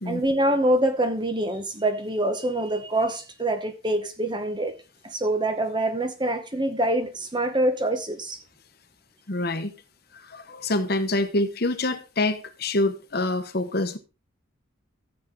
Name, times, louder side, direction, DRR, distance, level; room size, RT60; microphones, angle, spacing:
voice 1, 0.0-4.7 5.0-8.4, right 1 dB, 20° right, 0.9 m, -25 dB
voice 2, 9.3-9.7 10.1-14.0, left 2 dB, 50° left, 1.1 m, -26 dB
14.0 x 7.5 x 3.7 m
head